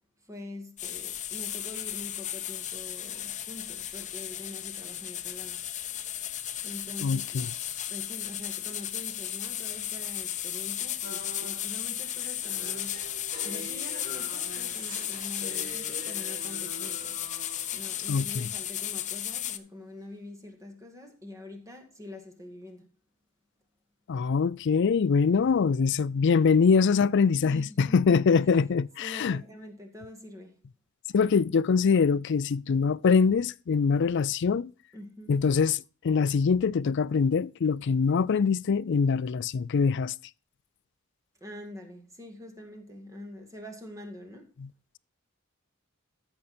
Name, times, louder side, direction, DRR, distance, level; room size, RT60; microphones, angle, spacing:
voice 1, 0.2-5.6 6.6-7.5 7.9-13.0 13.4-17.2 17.7-22.9 27.4-28.2 28.4-28.5 29.0-30.6 34.9-35.3 41.4-44.5, left 1 dB, 15° right, 1.9 m, -45 dB
sound 1, 0.8-19.6, left 11 dB, 35° left, 0.7 m, -35 dB
voice 2, 7.0-7.5 18.1-18.5 24.1-29.4 31.1-34.7 35.3-40.1 44.6-44.7, left 5 dB, 55° left, 0.4 m, -24 dB
sound 2, 11.0-18.3, right 1 dB, 40° right, 4.6 m, -45 dB
13.5 x 6.8 x 4.3 m
head